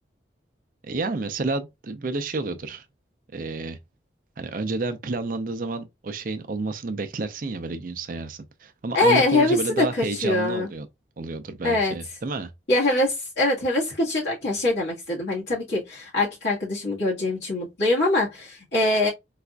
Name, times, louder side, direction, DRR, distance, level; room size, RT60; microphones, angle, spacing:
voice 1, 0.8-2.8 3.3-3.8 4.4-10.9 11.2-12.5, right 3 dB, 45° right, 0.4 m, -30 dB
voice 2, 8.9-10.7 11.6-11.9 12.7-19.1, left 2 dB, 70° left, 1.6 m, -23 dB
3.9 x 2.5 x 2.2 m
head